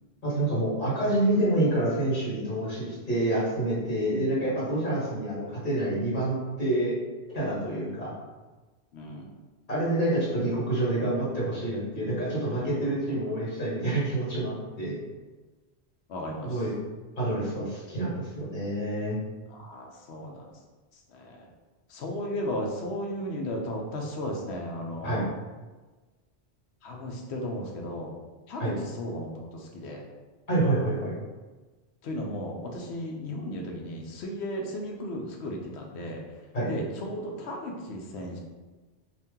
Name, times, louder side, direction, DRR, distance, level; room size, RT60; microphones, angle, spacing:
voice 1, 0.2-6.9 7.3-8.1 9.7-15.0 16.4-16.7 17.2-19.2 25.0-25.2 28.6-28.7 30.5-31.1 36.5-36.7, right 1 dB, 50° left, -7 dB, 1.4 m, -27 dB
voice 2, 8.9-9.3 12.5-12.9 16.1-16.5 19.5-20.4 21.1-21.4 21.9-25.3 26.8-28.1 28.5-30.1 32.0-36.2 36.7-38.4, left 1 dB, 80° left, 1 dB, 0.9 m, -35 dB
2.8 x 2.5 x 3.6 m, 1.3 s
omnidirectional pair, 1.1 m